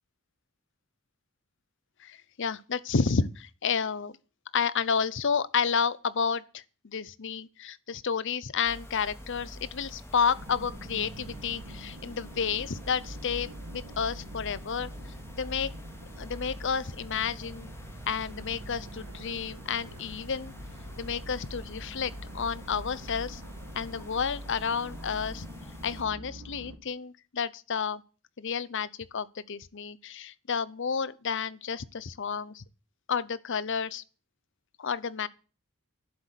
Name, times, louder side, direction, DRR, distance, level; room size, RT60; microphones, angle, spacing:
voice 1, 2.0-4.2 4.5-14.9 15.3-15.7 16.2-17.7 18.1-20.5 21.0-23.4 23.7-25.5 25.8-28.0 28.4-32.6 33.1-34.0 34.8-35.3, left 6 dB, 55° left, 0.7 m, -31 dB
sound 1, 8.6-26.0, equal, 10° left, 2.1 m, -46 dB
sound 2, 10.3-26.8, right 1 dB, 80° right, 1.8 m, -45 dB
11.5 x 7.8 x 8.3 m
head